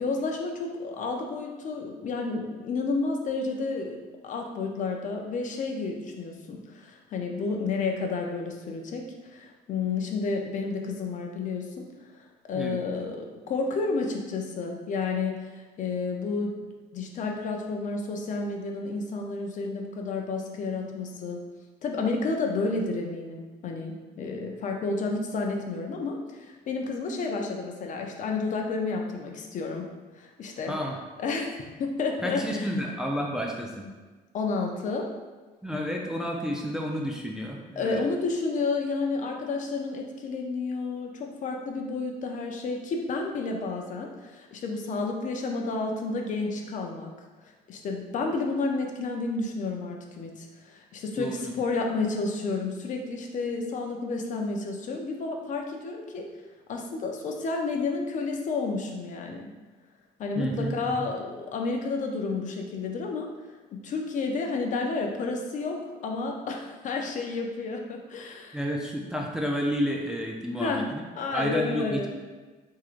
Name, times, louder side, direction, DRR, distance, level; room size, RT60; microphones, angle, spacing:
voice 1, 0.0-11.8 12.1-16.6 16.9-21.4 21.8-29.9 30.1-30.8 31.2-32.7 34.3-35.1 37.8-47.1 47.7-56.3 56.7-59.5 60.2-63.3 63.7-68.6 70.6-70.9 71.2-72.1, left 3 dB, 50° left, 2 dB, 0.5 m, -31 dB
voice 2, 30.7-31.0 32.2-33.9 35.6-38.0 51.2-51.5 60.4-61.1 68.5-71.0 71.3-72.1, equal, 5° right, 0 dB, 0.3 m, -30 dB
3.6 x 3.0 x 2.4 m, 1.3 s
cardioid pair, 110°, 17 cm